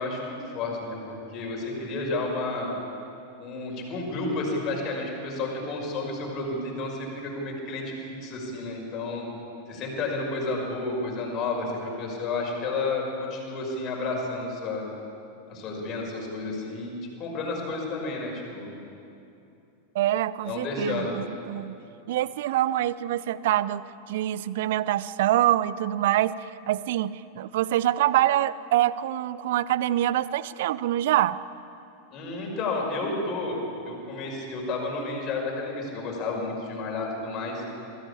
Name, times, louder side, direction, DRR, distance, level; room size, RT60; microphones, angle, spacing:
voice 1, 0.0-2.7 3.4-9.3 9.7-14.8 15.5-18.7 20.4-21.2 32.1-37.6, left 3 dB, 35° left, -1 dB, 5.8 m, -31 dB
voice 2, 19.9-21.8 22.1-31.4, right 13 dB, 55° right, 18 dB, 0.6 m, -25 dB
23.0 x 15.0 x 8.7 m, 2.8 s
figure-of-eight pair, 90°, 0 cm